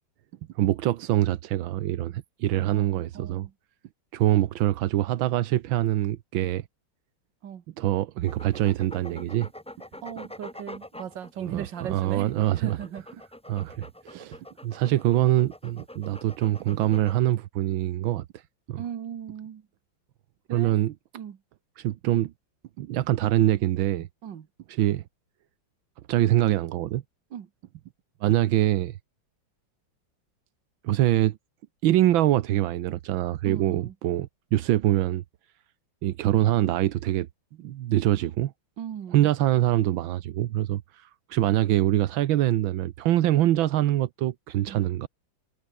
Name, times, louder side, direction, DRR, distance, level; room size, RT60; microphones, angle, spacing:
voice 1, 0.6-3.5 4.1-6.6 7.8-9.5 11.5-12.8 13.5-18.2 18.7-18.8 20.5-20.9 21.8-22.3 22.8-24.1 24.7-25.0 26.1-27.0 28.2-28.9 30.8-31.4 31.8-35.2 36.0-37.3 37.6-38.5 39.1-45.1, right 13 dB, 85° right, 1.6 m, -24 dB
voice 2, 2.7-3.5 7.4-7.6 10.0-13.1 18.8-19.7 20.5-20.8 21.1-21.4 24.2-24.5 27.3-27.5 33.4-34.0 38.8-39.3 44.7-44.8, right 9 dB, 65° right, 2.1 m, -37 dB
sound 1, 8.3-17.2, left 1 dB, 10° left, 0.4 m, -45 dB
omnidirectional pair, 2.1 m